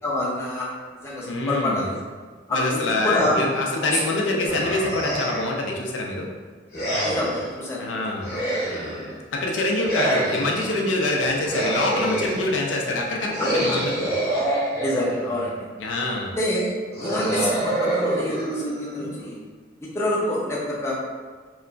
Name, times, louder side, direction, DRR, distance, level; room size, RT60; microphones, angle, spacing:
voice 1, 0.0-0.7 1.0-2.0 2.5-3.5 3.9-4.0 7.0-7.9 8.3-8.5 13.4-13.8 14.8-15.7 16.4-19.4 19.8-20.9, left 1 dB, 15° left, -5 dB, 0.4 m, -27 dB
voice 2, 1.2-1.9 2.5-6.3 7.8-8.3 9.3-14.2 15.8-16.3, left 2 dB, 75° left, 0 dB, 0.4 m, -25 dB
sound 1, 4.5-5.6 6.7-7.5 8.2-9.2 9.8-10.7 11.4-12.5 13.3-15.4 16.9-19.3, right 1 dB, 55° left, 0.8 m, -26 dB
2.9 x 2.4 x 2.2 m, 1.5 s
head